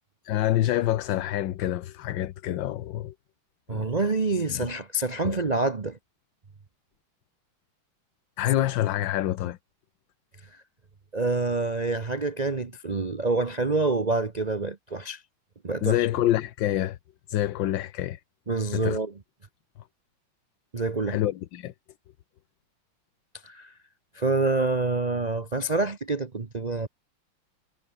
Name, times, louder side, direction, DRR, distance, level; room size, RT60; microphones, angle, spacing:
voice 1, 0.2-3.1 3.7-3.8 4.5-4.7 5.2-5.4 8.4-9.6 15.8-17.0 17.3-18.2 18.7-19.0 21.1-21.7, left 13 dB, 65° left, 1.4 m, -26 dB
voice 2, 3.7-6.0 11.1-15.2 15.6-16.1 18.5-19.1 20.7-21.2 23.4-23.7 24.1-26.9, right 3 dB, 35° right, 0.6 m, -27 dB
omnidirectional pair, 2.4 m